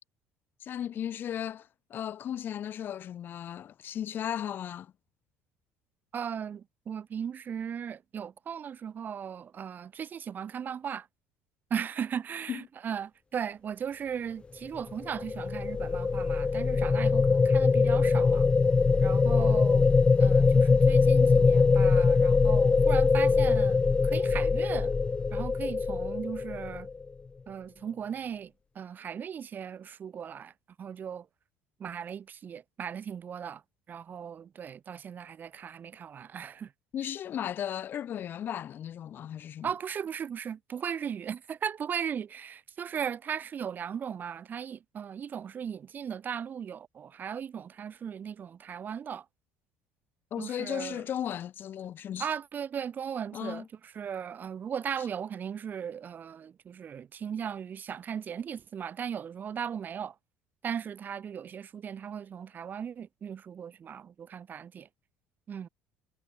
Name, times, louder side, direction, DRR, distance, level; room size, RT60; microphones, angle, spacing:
voice 1, 0.6-4.9 12.5-12.6 36.9-39.7 50.3-52.3 53.3-53.7 55.0-55.1, left 10 dB, 50° left, 0.9 m, -36 dB
voice 2, 6.1-11.1 11.7-18.5 19.0-19.9 20.2-24.9 25.3-26.9 27.5-30.5 30.8-31.3 31.8-33.6 33.9-36.7 39.6-49.2 50.4-51.0 52.2-60.1 60.6-64.9 65.5-65.7, right 8 dB, 40° right, 2.2 m, -37 dB
sound 1, 14.9-27.1, left 4 dB, 25° left, 0.5 m, -23 dB
hypercardioid pair, 70°, 5 cm